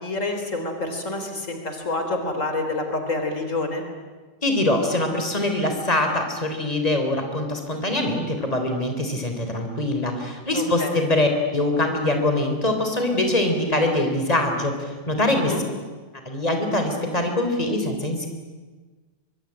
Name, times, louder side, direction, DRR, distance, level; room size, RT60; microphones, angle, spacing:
voice 1, 0.0-3.8 10.5-11.0 15.3-15.6, left 2 dB, 85° left, 5 dB, 4.1 m, -28 dB
voice 2, 4.4-15.5 16.3-18.3, left 1 dB, 30° left, 4 dB, 3.8 m, -23 dB
24.5 x 23.5 x 10.0 m, 1.3 s
omnidirectional pair, 1.3 m